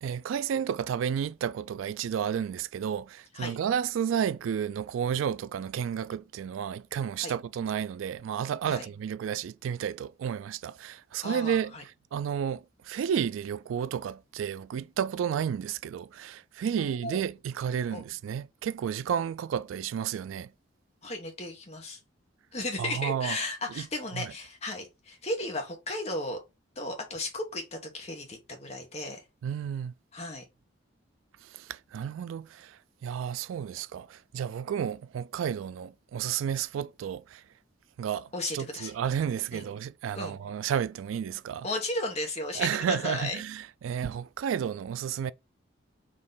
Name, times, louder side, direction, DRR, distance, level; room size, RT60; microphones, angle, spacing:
voice 1, 0.0-11.7 12.1-20.5 22.8-23.4 24.1-24.3 29.4-29.9 31.5-37.4 38.0-38.3 38.5-41.7 42.6-45.3, right 8 dB, 85° right, 0.3 m, -32 dB
voice 2, 11.2-11.8 16.8-17.2 17.9-18.0 21.0-22.0 22.5-26.4 26.8-29.2 30.1-30.4 38.3-38.9 39.5-39.7 40.1-40.4 41.6-43.4, left 2 dB, 35° left, 1.3 m, -35 dB
3.7 x 3.1 x 3.9 m
head